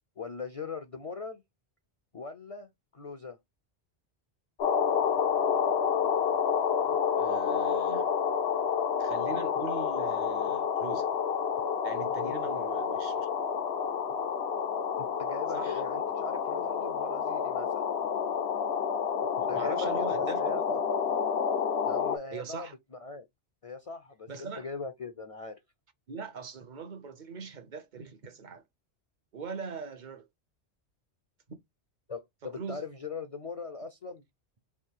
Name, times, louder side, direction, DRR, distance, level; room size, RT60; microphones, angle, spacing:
voice 1, 0.2-1.4 2.1-3.4 12.2-12.5 15.0-17.9 19.5-20.8 21.8-23.3 23.6-25.6 32.1-34.2, left 4 dB, 40° left, 0.5 m, -40 dB
sound 1, 4.6-22.2, left 7 dB, 65° left, 0.9 m, -29 dB
voice 2, 7.2-8.1 9.0-11.1 11.8-13.3 15.5-15.8 19.5-20.4 22.3-22.7 24.3-24.7 26.1-28.6 29.3-30.3 31.5-31.6 32.4-32.8, right 5 dB, 50° right, 0.7 m, -41 dB
3.5 x 2.6 x 4.5 m
omnidirectional pair, 1.2 m